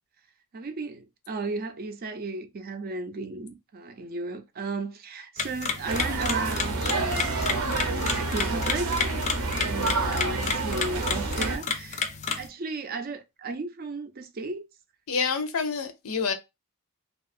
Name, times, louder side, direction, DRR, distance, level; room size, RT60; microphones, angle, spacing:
voice 1, 0.5-7.3 7.8-9.0 9.6-12.1 12.3-14.6, right 3 dB, 45° right, 0.4 m, -34 dB
sound 1, 5.4-12.5, left 5 dB, 35° left, 0.4 m, -32 dB
sound 2, 5.9-11.6, right 3 dB, 85° right, 0.7 m, -28 dB
voice 2, 15.1-16.3, left 5 dB, 90° left, 0.6 m, -27 dB
2.7 x 2.4 x 2.4 m
head